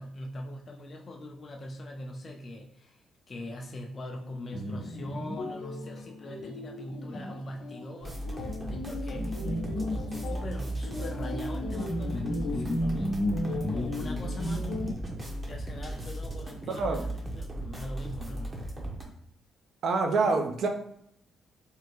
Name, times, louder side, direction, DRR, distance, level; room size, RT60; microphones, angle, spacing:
voice 1, 0.0-14.7 15.4-17.0 17.3-18.6, left 1 dB, 40° left, 1 dB, 0.5 m, -42 dB
sound 1, 4.5-14.9, left 1 dB, 90° left, 0.7 m, -34 dB
sound 2, 8.0-19.0, right 1 dB, 30° right, 0.8 m, -36 dB
voice 2, 16.7-17.0 19.8-20.7, right 3 dB, 65° right, 5 dB, 0.5 m, -26 dB
3.4 x 2.1 x 3.0 m, 0.71 s
cardioid pair, 90°, 0 cm